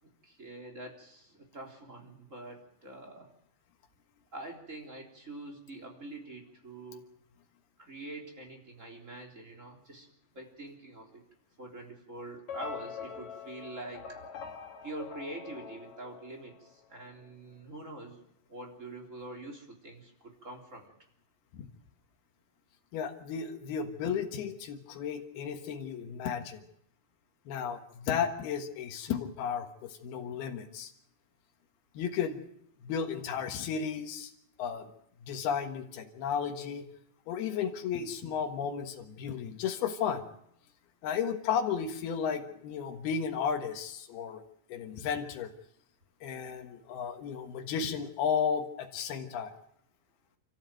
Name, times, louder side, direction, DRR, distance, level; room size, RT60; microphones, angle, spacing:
voice 1, 0.0-3.3 4.3-7.0 7.8-10.1 10.3-11.2 11.6-14.2 14.8-18.2 18.5-20.9, right 2 dB, 20° right, 1 dB, 3.6 m, -45 dB
sound 1, 12.5-16.8, left 7 dB, 55° left, 3.0 m, -44 dB
voice 2, 22.9-26.7 27.5-30.9 31.9-32.4 32.8-34.3 34.6-34.9 35.2-36.9 37.3-40.2 41.0-44.4 44.7-45.5 46.2-49.5, left 7 dB, 85° left, 3 dB, 3.5 m, -33 dB
28.5 x 13.5 x 9.1 m, 0.75 s
omnidirectional pair, 4.3 m